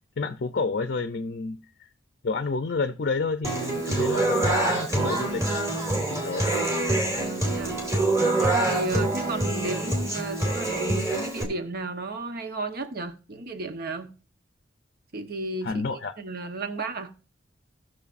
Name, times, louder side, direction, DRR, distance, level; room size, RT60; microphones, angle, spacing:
voice 1, 0.2-1.9 2.2-6.5 8.9-9.1 15.6-16.1, left 4 dB, 55° left, 0.6 m, -30 dB
Human voice / Acoustic guitar, 3.4-11.4, right 2 dB, 15° right, 2.4 m, -25 dB
voice 2, 7.1-7.8 8.4-14.1 15.1-15.8 16.2-17.1, right 3 dB, 50° right, 1.0 m, -33 dB
18.0 x 6.3 x 2.5 m
head